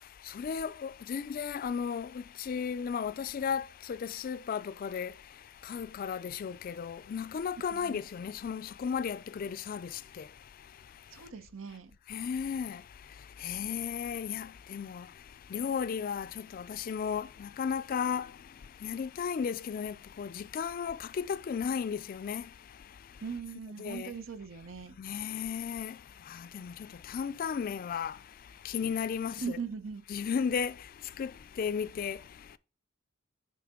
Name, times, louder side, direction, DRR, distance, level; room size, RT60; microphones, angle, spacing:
voice 1, 0.0-11.3 12.1-23.2 23.8-24.1 25.0-29.6 30.1-32.6, left 7 dB, 45° left, 0.3 m, -35 dB
voice 2, 11.1-11.9 23.2-25.0 29.4-30.0, right 5 dB, 85° right, 0.8 m, -40 dB
9.3 x 4.0 x 3.7 m
head